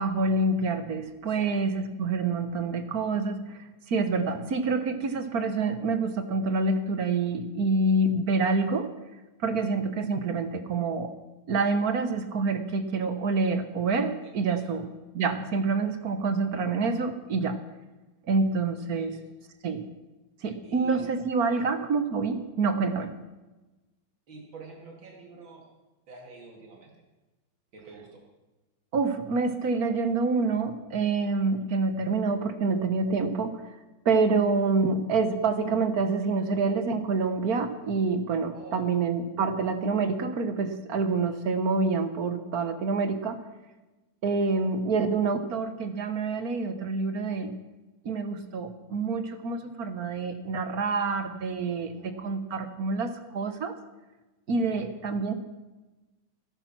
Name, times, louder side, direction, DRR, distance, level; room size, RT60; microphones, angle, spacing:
voice 1, 0.0-3.6 3.9-8.9 9.4-11.1 11.5-14.9 15.1-17.6 18.3-19.1 19.6-19.8 20.4-23.1 28.9-33.6 34.0-43.4 44.2-47.5 48.0-53.7 54.5-55.3, right 4 dB, 55° right, 9 dB, 1.6 m, -27 dB
voice 2, 1.2-1.7 4.3-4.4 9.5-9.7 19.0-19.2 20.6-21.0 21.4-21.6 24.3-25.7 26.1-26.9 27.7-28.2 32.0-32.1 38.5-39.1 41.1-41.2 44.4-44.7 51.7-52.3 54.7-54.8, right 3 dB, 80° right, 0 dB, 3.5 m, -48 dB
17.5 x 10.0 x 6.0 m, 1.1 s
omnidirectional pair, 2.1 m